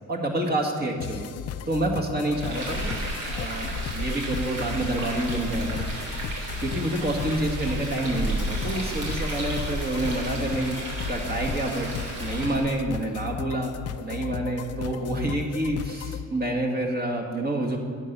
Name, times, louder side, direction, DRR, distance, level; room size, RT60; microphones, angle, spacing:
voice 1, 0.1-1.3 1.7-3.0 3.3-6.3 6.6-10.8 11.1-11.9 12.2-13.7 14.0-17.8, right 1 dB, 30° right, 1 dB, 1.8 m, -28 dB
sound 1, 1.0-16.2, left 9 dB, 55° left, 0.6 m, -35 dB
Frying (food), 2.3-12.7, right 1 dB, 80° right, 3.1 m, -33 dB
11.0 x 8.0 x 5.5 m, 2.2 s
cardioid pair, 90°, 30 cm